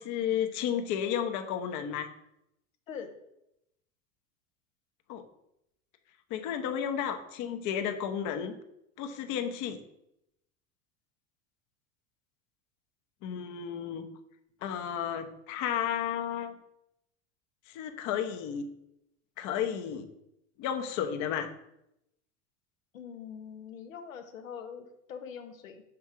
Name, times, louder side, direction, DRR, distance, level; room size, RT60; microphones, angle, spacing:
voice 1, 0.0-2.1 5.1-5.2 6.3-8.5 9.0-9.8 13.2-14.1 14.6-16.6 17.7-18.6 19.4-20.1 20.6-21.5, left 9 dB, 50° left, 7 dB, 0.9 m, -32 dB
voice 2, 22.9-25.8, left 7 dB, 85° left, 6 dB, 1.0 m, -43 dB
6.2 x 3.6 x 5.9 m, 0.83 s
hypercardioid pair, 90°, 39 cm